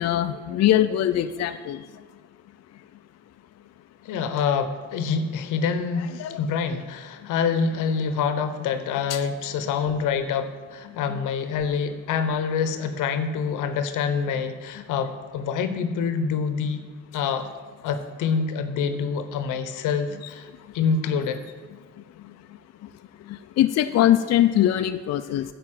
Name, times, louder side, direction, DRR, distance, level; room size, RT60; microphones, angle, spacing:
voice 1, 0.0-1.8 6.2-6.4 9.1-9.2 23.6-25.4, left 12 dB, 60° left, 9 dB, 0.5 m, -21 dB
voice 2, 4.0-16.8 17.1-17.5 17.8-20.5 20.7-21.4, left 6 dB, 90° left, 10 dB, 0.9 m, -26 dB
9.7 x 5.2 x 7.6 m, 1.4 s
cardioid pair, 90°, 30 cm